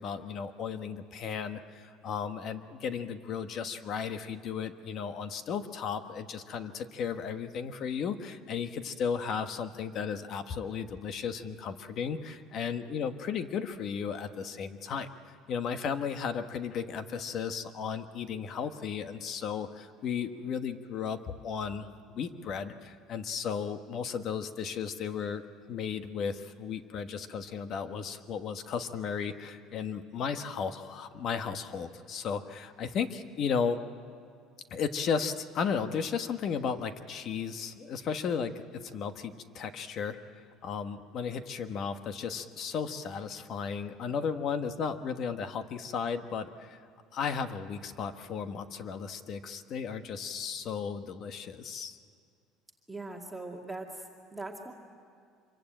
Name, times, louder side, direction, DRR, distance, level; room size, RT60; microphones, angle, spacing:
voice 1, 0.0-25.4 25.7-33.8 34.7-46.8 47.1-52.0, left 6 dB, 40° left, 9 dB, 1.2 m, -35 dB
voice 2, 52.9-54.7, right 2 dB, 5° right, -1 dB, 2.1 m, -41 dB
25.5 x 23.5 x 8.9 m, 2.3 s
cardioid pair, 160°, 0 cm